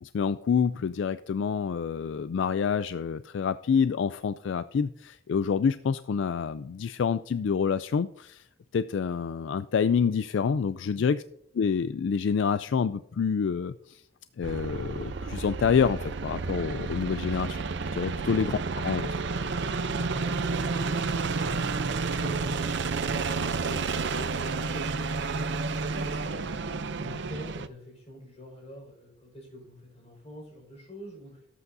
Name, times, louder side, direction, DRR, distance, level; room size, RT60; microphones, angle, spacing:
voice 1, 0.0-8.4 8.7-11.2 11.5-14.0 14.4-17.6 17.9-19.1, left 6 dB, 65° left, 13 dB, 0.3 m, -27 dB
sound 1, 14.4-27.7, right 4 dB, 60° right, 0.6 m, -30 dB
voice 2, 18.1-18.6 19.9-22.8 23.2-23.6 24.1-31.4, equal, 30° left, 0 dB, 5.0 m, -45 dB
18.0 x 8.4 x 2.7 m, 0.74 s
head